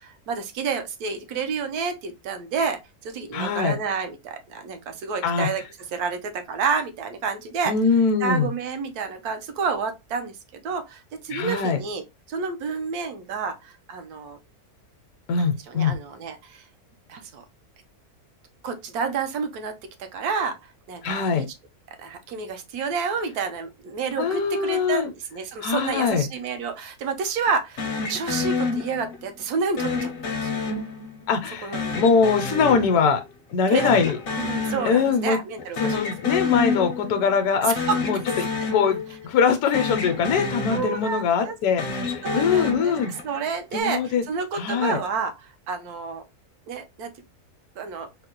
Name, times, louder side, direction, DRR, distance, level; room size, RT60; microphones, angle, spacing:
voice 1, 0.0-5.6 5.9-7.7 8.2-12.0 12.3-14.4 15.4-16.6 17.1-17.4 18.6-20.6 20.9-21.5 22.0-30.5 31.6-32.1 33.7-36.0 36.3-36.4 37.6-38.0 40.7-41.6 42.2-42.9 43.2-46.2 46.7-47.1 47.8-48.1, right 5 dB, 80° right, 1.2 m, -29 dB
voice 2, 3.3-3.8 5.2-5.5 7.7-8.5 11.3-11.8 15.3-15.9 21.0-21.4 24.2-25.1 25.6-26.3 31.3-33.2 33.5-34.2 34.8-35.4 35.8-37.8 38.0-39.0 39.2-43.1 43.7-44.2 44.5-45.0, left 5 dB, 80° left, 1.0 m, -22 dB
sound 1, 27.8-29.3 29.8-31.3 31.7-33.5 33.8-35.3 35.6-37.3 37.7-39.5 39.7-41.3 41.7-43.5, left 4 dB, 60° left, 0.6 m, -29 dB
3.7 x 2.1 x 2.8 m
omnidirectional pair, 1.6 m